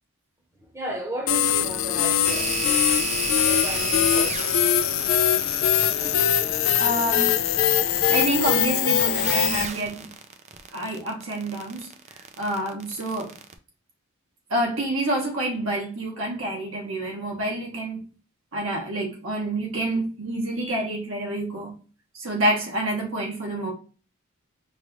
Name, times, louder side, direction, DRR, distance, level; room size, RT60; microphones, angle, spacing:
voice 1, 0.7-2.8 3.4-4.6, right 1 dB, 10° right, 0.9 m, -35 dB
sound 1, 1.3-9.7, left 9 dB, 60° left, 0.4 m, -22 dB
sound 2, 2.2-13.5, right 5 dB, 30° right, 0.4 m, -34 dB
voice 2, 6.8-7.3 8.1-10.1 10.7-11.9 12.4-13.3 14.5-18.0 18.5-21.7 22.1-23.7, right 1 dB, 60° right, 1.0 m, -28 dB
5.3 x 2.4 x 2.9 m
head